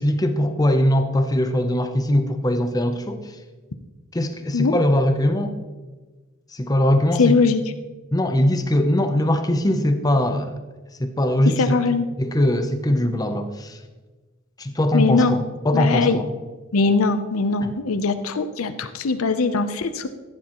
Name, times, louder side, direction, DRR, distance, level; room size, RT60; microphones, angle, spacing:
voice 1, 0.0-3.4 4.1-5.5 6.5-7.4 8.1-10.5 11.0-11.7 12.2-13.8 14.6-16.3 17.6-17.7, left 1 dB, 15° left, 7 dB, 0.7 m, -21 dB
voice 2, 7.2-7.6 11.4-12.1 14.9-15.4 15.7-16.2 16.7-20.1, left 4 dB, 75° left, 9 dB, 0.7 m, -21 dB
15.5 x 9.7 x 3.0 m, 1.3 s
head